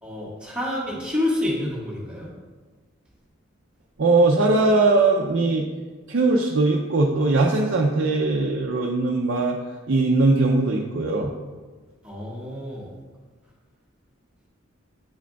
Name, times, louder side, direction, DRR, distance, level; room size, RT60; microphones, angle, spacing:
voice 1, 0.0-2.3 12.0-12.9, left 1 dB, 5° right, -7 dB, 1.4 m, -28 dB
voice 2, 4.0-5.6 6.1-9.6 9.9-11.3, right 3 dB, 60° right, 0 dB, 0.5 m, -20 dB
8.9 x 4.9 x 2.3 m, 1.4 s
head